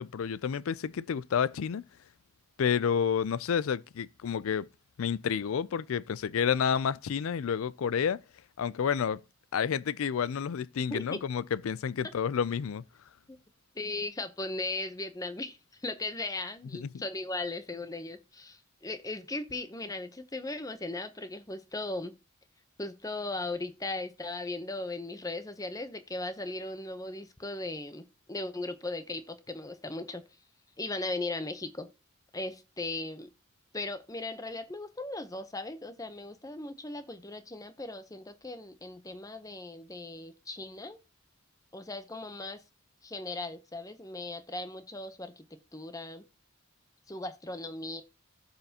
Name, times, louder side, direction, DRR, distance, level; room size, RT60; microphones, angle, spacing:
voice 1, 0.0-1.8 2.6-4.7 5.0-8.2 8.6-9.2 9.5-12.8 16.8-16.9, left 7 dB, 75° left, 0.4 m, -30 dB
voice 2, 10.9-11.2 13.3-13.4 13.7-22.2 22.8-30.2 30.8-31.9 32.3-33.3 33.7-41.0 41.7-42.6 43.0-45.5 45.7-46.3 47.1-48.0, left 2 dB, 15° left, 0.7 m, -38 dB
15.0 x 5.6 x 2.8 m
head